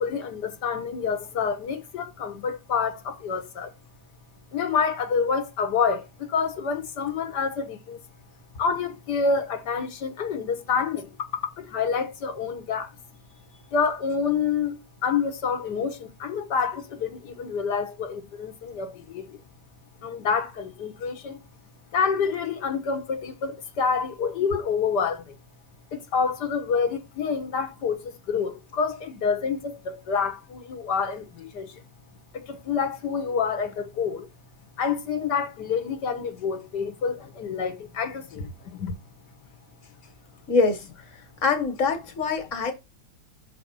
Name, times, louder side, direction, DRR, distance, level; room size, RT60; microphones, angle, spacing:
voice 1, 0.0-3.7 4.5-8.0 8.6-13.0 13.7-19.6 20.0-21.4 21.9-25.4 25.9-31.8 32.3-34.3 34.8-38.9, left 5 dB, 80° left, 1.7 m, -28 dB
voice 2, 40.5-40.8 41.4-42.7, left 4 dB, 50° left, 1.8 m, -23 dB
6.3 x 4.5 x 5.3 m
omnidirectional pair, 1.8 m